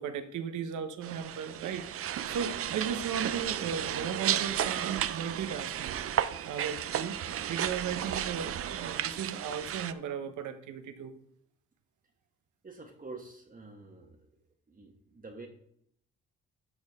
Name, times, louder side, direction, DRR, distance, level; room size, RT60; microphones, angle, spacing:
voice 1, 0.0-6.0 6.4-11.1, right 7 dB, 75° right, 9 dB, 1.1 m, -36 dB
sound 1, 1.0-9.9, right 10 dB, 50° right, 0.5 m, -33 dB
voice 2, 12.6-14.3 14.7-15.5, right 3 dB, 30° right, 1 dB, 1.4 m, -47 dB
12.5 x 6.3 x 3.6 m, 0.69 s
cardioid pair, 90°, 30 cm